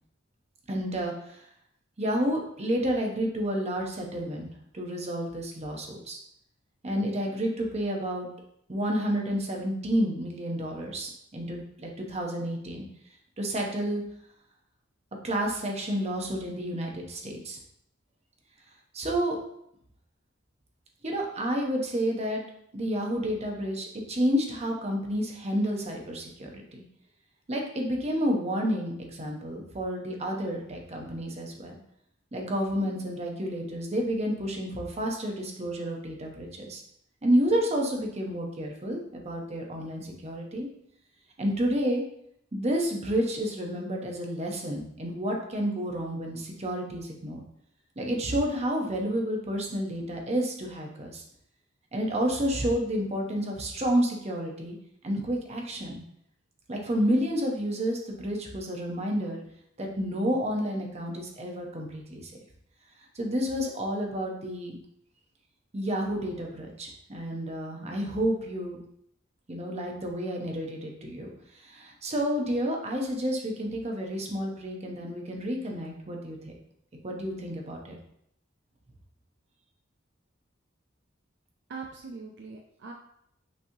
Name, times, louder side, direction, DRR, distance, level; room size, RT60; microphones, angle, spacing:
voice 1, 0.7-1.4 2.0-4.5 4.7-6.2 6.8-8.3 8.7-12.9 13.4-14.0 15.2-17.6 18.9-19.4 21.0-22.4 22.7-26.8 27.5-31.8 32.3-36.8 37.2-40.7 41.4-42.0 42.5-47.4 48.0-51.2 51.9-54.7 55.0-56.0 56.7-59.4 59.8-62.3 63.1-64.8 65.7-68.8 69.5-71.3 71.6-76.5 77.0-78.0, equal, 35° right, 1 dB, 0.8 m, -30 dB
voice 2, 81.7-82.9, right 4 dB, 60° right, 2 dB, 0.4 m, -41 dB
6.0 x 3.0 x 2.7 m, 0.73 s
head